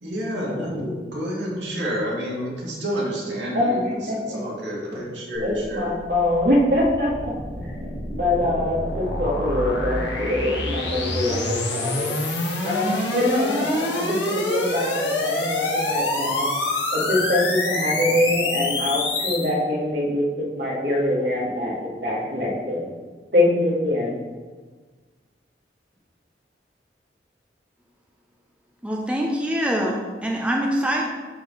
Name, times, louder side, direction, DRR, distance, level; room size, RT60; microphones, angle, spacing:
voice 1, 0.0-5.9, equal, 85° right, -4 dB, 2.0 m, -29 dB
voice 2, 4.1-4.4 5.4-12.1 12.6-16.5 16.9-22.9 23.3-24.2, left 1 dB, 65° right, -3 dB, 1.9 m, -24 dB
sound 1, 5.3-19.5, left 2 dB, 85° left, 1.4 m, -27 dB
voice 3, 28.8-31.1, equal, 5° right, -1 dB, 0.6 m, -24 dB
11.0 x 4.1 x 3.2 m, 1.4 s
head